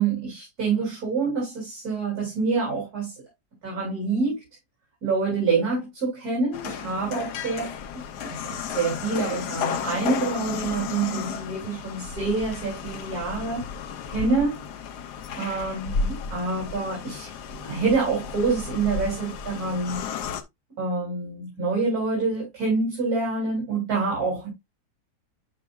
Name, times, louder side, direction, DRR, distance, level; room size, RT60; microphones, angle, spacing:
voice 1, 0.0-3.2 3.6-4.4 5.0-7.8 8.2-13.6 14.1-14.6 15.4-17.3 17.6-20.1 20.8-24.5, right 4 dB, 65° right, 3.6 m, -26 dB
sound 1, 6.5-20.4, left 6 dB, 80° left, 1.4 m, -33 dB
11.0 x 4.9 x 2.4 m
omnidirectional pair, 1.7 m